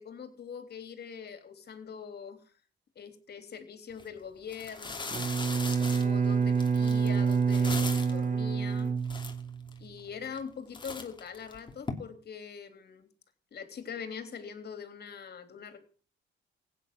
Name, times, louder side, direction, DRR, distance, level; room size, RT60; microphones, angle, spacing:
voice 1, 0.0-2.4 2.9-5.3 5.8-8.9 9.8-13.1 13.5-15.8, left 6 dB, 55° left, 8 dB, 3.4 m, -43 dB
sound 1, 3.9-4.0 4.5-8.2 8.8-8.9 9.1-9.8 10.3-10.5 10.7-11.9, left 4 dB, 25° left, 2.9 m, -39 dB
Bowed string instrument, 5.1-9.8, right 5 dB, 40° right, 1.4 m, -27 dB
16.0 x 9.3 x 7.6 m, 0.42 s
cardioid pair, 90°, 20 cm